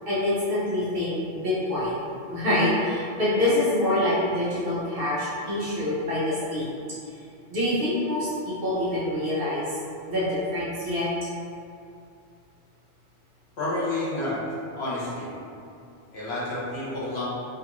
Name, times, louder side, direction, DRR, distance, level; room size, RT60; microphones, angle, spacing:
voice 1, 0.1-2.0 2.3-6.7 7.5-9.7 10.1-11.1, left 1 dB, 55° right, -9 dB, 1.0 m, -25 dB
voice 2, 13.6-14.4 14.7-15.3 16.1-17.2, left 2 dB, 65° left, -8 dB, 1.2 m, -29 dB
3.0 x 2.5 x 2.9 m, 2.5 s
omnidirectional pair, 1.2 m